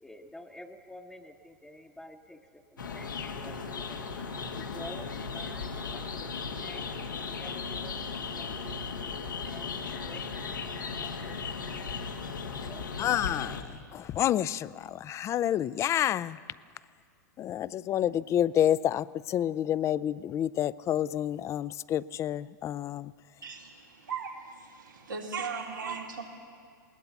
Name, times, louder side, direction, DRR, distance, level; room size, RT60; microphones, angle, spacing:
voice 1, 0.0-11.4 12.4-13.1, left 1 dB, 5° left, 2 dB, 0.9 m, -50 dB
sound 1, 2.8-13.6, left 5 dB, 85° left, 1.6 m, -36 dB
voice 2, 13.0-16.4 17.4-23.1, left 11 dB, 30° left, 19 dB, 0.4 m, -29 dB
voice 3, 23.4-26.2, right 5 dB, 90° right, -1 dB, 3.0 m, -38 dB
20.0 x 19.0 x 7.1 m, 2.1 s
hypercardioid pair, 105°, 10 cm